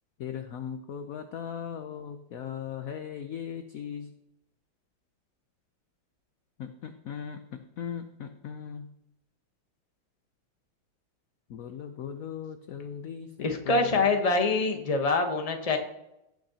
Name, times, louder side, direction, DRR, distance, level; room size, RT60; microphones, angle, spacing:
voice 1, 0.2-4.1 6.6-7.4 7.8-8.9 11.5-14.1, left 8 dB, 70° left, 7 dB, 0.8 m, -38 dB
voice 2, 13.4-15.8, left 3 dB, 25° left, 5 dB, 0.9 m, -25 dB
17.5 x 6.5 x 2.9 m, 0.86 s
omnidirectional pair, 2.2 m